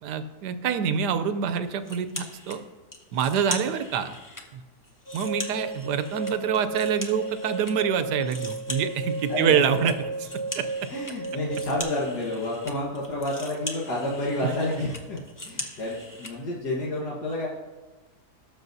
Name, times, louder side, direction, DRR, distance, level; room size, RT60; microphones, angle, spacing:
voice 1, 0.0-2.6 3.1-4.2 4.5-4.6 5.1-10.1 10.3-10.9 14.4-14.5, right 7 dB, 90° right, 11 dB, 1.2 m, -26 dB
sound 1, 1.8-2.6 2.9-4.4 4.8-7.7 8.0-16.3, left 1 dB, 15° left, 0.8 m, -40 dB
sound 2, 5.1-11.8, right 3 dB, 50° left, 2.2 m, -34 dB
voice 2, 9.3-9.6 10.9-15.2 15.4-17.5, left 1 dB, 80° left, -5 dB, 2.0 m, -29 dB
18.0 x 6.8 x 2.7 m, 1.2 s
omnidirectional pair, 1.7 m